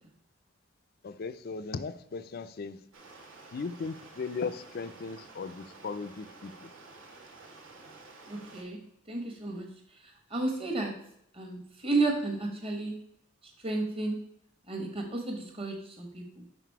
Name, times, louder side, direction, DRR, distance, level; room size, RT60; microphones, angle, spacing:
voice 1, 1.0-2.8 3.5-6.7, left 4 dB, 45° left, 13 dB, 0.4 m, -37 dB
Stream, 2.9-8.6, right 3 dB, 65° right, 1.3 m, -51 dB
voice 2, 8.3-8.8 9.1-9.7 9.9-10.9 11.3-12.9 13.4-14.2 14.7-16.4, right 2 dB, 25° right, 2 dB, 1.2 m, -32 dB
5.9 x 5.0 x 4.6 m, 0.73 s
head